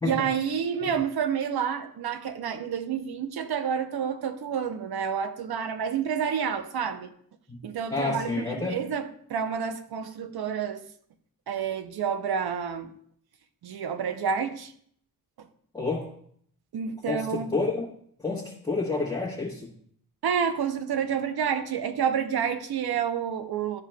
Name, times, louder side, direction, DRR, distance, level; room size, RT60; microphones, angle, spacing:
voice 1, 0.0-7.1 7.6-10.8 11.5-12.9 13.6-14.7 15.4-15.5 16.7-17.5 20.2-23.8, right 7 dB, 90° right, 9 dB, 0.7 m, -29 dB
voice 2, 7.9-8.8 15.7-16.1 17.1-17.9 18.2-19.7, left 3 dB, 10° left, -7 dB, 1.2 m, -29 dB
11.5 x 4.8 x 2.2 m, 0.63 s
wide cardioid pair, 145°, 37 cm